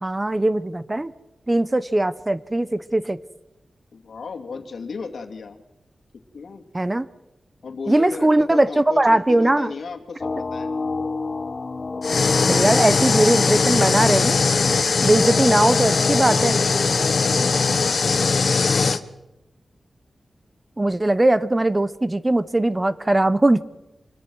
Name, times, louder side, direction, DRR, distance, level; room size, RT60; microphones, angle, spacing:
voice 1, 0.0-1.1 1.5-3.2 6.7-7.0 7.9-9.7 12.5-14.4 15.0-16.6 20.8-23.6, right 1 dB, 20° right, 15 dB, 0.9 m, -20 dB
voice 2, 3.9-5.6 6.3-6.6 7.6-10.7 16.2-18.9, left 4 dB, 85° left, 5 dB, 2.5 m, -34 dB
sound 1, 10.2-18.3, left 3 dB, 45° left, 0.9 m, -30 dB
sound 2, 12.0-19.0, left 4 dB, 65° left, 1.1 m, -20 dB
26.0 x 21.5 x 6.3 m, 0.94 s
wide cardioid pair, 100°, 0 cm